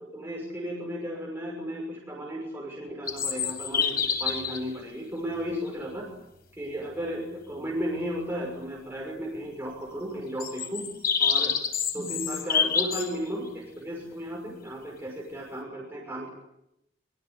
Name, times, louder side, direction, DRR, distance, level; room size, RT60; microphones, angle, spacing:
voice 1, 0.1-6.1 6.5-10.9 11.2-11.5 11.9-16.3, equal, 10° right, -2 dB, 6.2 m, -34 dB
sound 1, 3.1-4.6 5.7-5.8 10.4-13.1, left 6 dB, 50° left, 6.8 m, -27 dB
27.5 x 25.0 x 8.4 m, 0.85 s
head